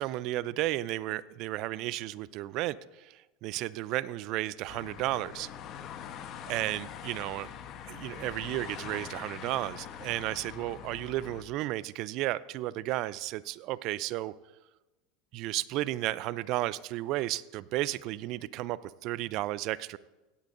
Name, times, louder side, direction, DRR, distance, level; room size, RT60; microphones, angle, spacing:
voice 1, 0.0-2.8 3.4-5.5 6.5-7.5 7.9-14.3 15.3-20.0, right 16 dB, 55° right, 19 dB, 0.4 m, -33 dB
sound 1, 4.7-11.4, left 9 dB, 45° left, 1.0 m, -43 dB
17.0 x 11.5 x 2.6 m, 1.1 s
hypercardioid pair, 95°, 0 cm